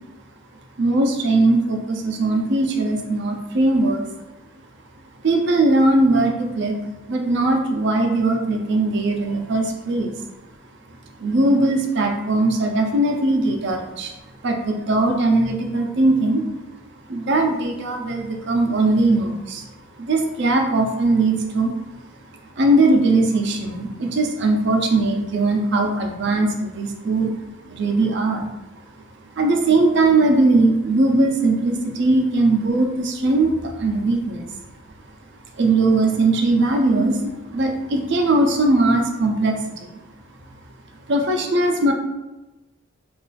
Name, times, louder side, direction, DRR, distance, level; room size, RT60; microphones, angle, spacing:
voice 1, 0.8-4.0 5.2-6.8 7.1-10.1 11.2-14.1 14.4-16.4 17.1-19.6 20.0-21.7 22.6-27.4 27.6-28.5 29.4-34.5 35.6-39.9 41.1-41.9, right 2 dB, 55° right, 3 dB, 0.5 m, -19 dB
2.4 x 2.3 x 3.9 m, 1.0 s
head